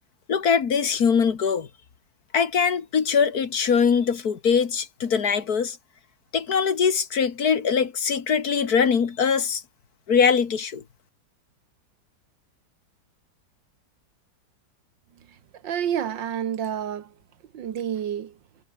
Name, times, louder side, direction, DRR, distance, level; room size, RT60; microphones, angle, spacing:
voice 1, 0.3-1.7 2.3-5.8 6.3-9.6 10.1-10.8, left 6 dB, 55° left, 2.0 m, -22 dB
voice 2, 15.6-17.1 17.5-18.3, right 9 dB, 80° right, 2.0 m, -29 dB
omnidirectional pair, 2.0 m